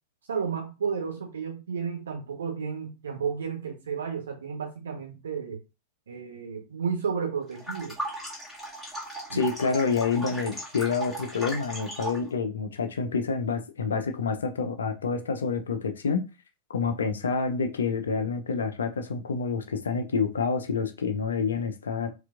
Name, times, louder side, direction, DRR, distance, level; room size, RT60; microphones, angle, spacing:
voice 1, 0.3-5.6 6.1-8.0 9.3-9.4, right 6 dB, 65° right, 2 dB, 1.0 m, -32 dB
sound 1, 7.5-12.3, right 1 dB, ahead, 1.7 m, -37 dB
voice 2, 9.3-16.2 16.7-22.1, left 5 dB, 70° left, 7 dB, 0.5 m, -28 dB
4.3 x 2.5 x 2.4 m, 0.28 s
figure-of-eight pair, 90°, 0 cm